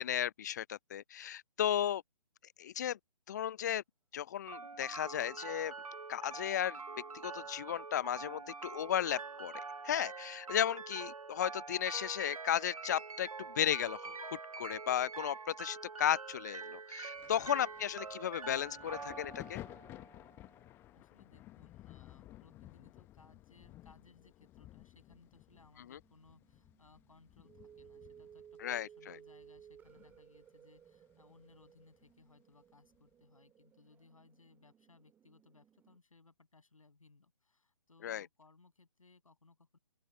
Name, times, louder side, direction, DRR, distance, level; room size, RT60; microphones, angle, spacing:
voice 1, 0.0-2.0 2.6-3.0 3.3-3.8 4.1-5.7 6.1-6.8 7.2-9.5 9.8-19.6 28.6-29.2 38.0-38.3, left 10 dB, 30° left, 0.7 m, -35 dB
sound 1, 4.5-20.5, right 4 dB, 75° right, 0.7 m, -45 dB
Thunder, 17.2-30.5 30.8-32.1 32.9-33.1, left 15 dB, 10° left, 1.0 m, -55 dB
voice 2, 20.9-39.8, left 3 dB, 65° left, 7.0 m, -64 dB
sound 2, 26.0-36.0, right 8 dB, 10° right, 2.9 m, -60 dB
open air
figure-of-eight pair, 135°, 19 cm